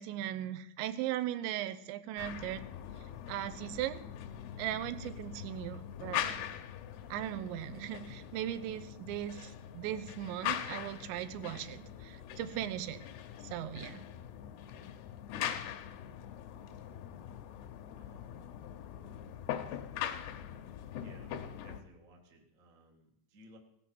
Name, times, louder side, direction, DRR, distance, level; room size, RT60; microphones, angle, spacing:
voice 1, 0.0-2.6 3.3-4.0 4.6-6.4 7.1-13.0 13.4-14.0, right 12 dB, 90° right, 12 dB, 3.1 m, -38 dB
sound 1, 2.2-21.8, left 10 dB, 75° left, 2.6 m, -42 dB
voice 2, 18.0-18.6 21.0-23.6, right 1 dB, 60° right, 0 dB, 0.8 m, -59 dB
17.0 x 7.7 x 6.1 m, 0.78 s
omnidirectional pair, 5.1 m